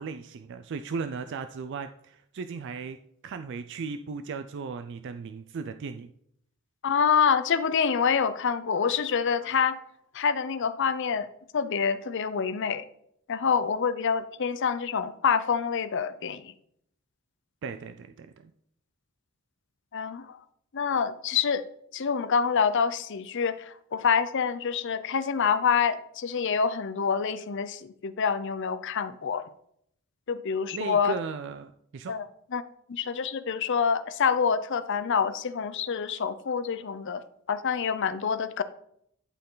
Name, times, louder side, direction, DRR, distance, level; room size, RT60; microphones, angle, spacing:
voice 1, 0.0-3.0 3.2-6.1 17.6-18.5 30.7-32.1, right 5 dB, 55° right, 9 dB, 0.4 m, -36 dB
voice 2, 6.8-9.8 10.1-11.3 11.5-12.8 13.3-16.5 19.9-20.4 20.7-21.6 21.9-29.4 30.3-31.1 32.1-32.3 32.5-32.6 32.9-37.2 37.5-38.6, left 6 dB, 55° left, 13 dB, 0.5 m, -26 dB
11.5 x 4.5 x 3.8 m, 0.70 s
head